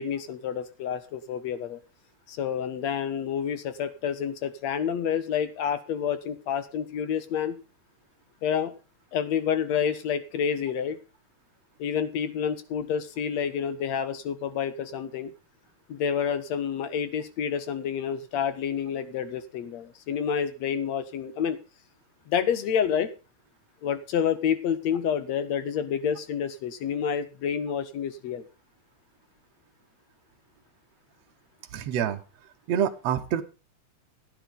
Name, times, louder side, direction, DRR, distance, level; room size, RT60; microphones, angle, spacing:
voice 1, 0.0-1.8 2.3-7.6 8.4-8.7 9.1-11.0 11.8-15.3 15.9-21.6 22.3-23.1 23.8-28.4, left 8 dB, 65° left, 12 dB, 2.5 m, -29 dB
voice 2, 31.7-32.2 32.7-33.4, right 9 dB, 65° right, 5 dB, 2.1 m, -26 dB
15.5 x 10.0 x 3.9 m, 0.31 s
omnidirectional pair, 3.6 m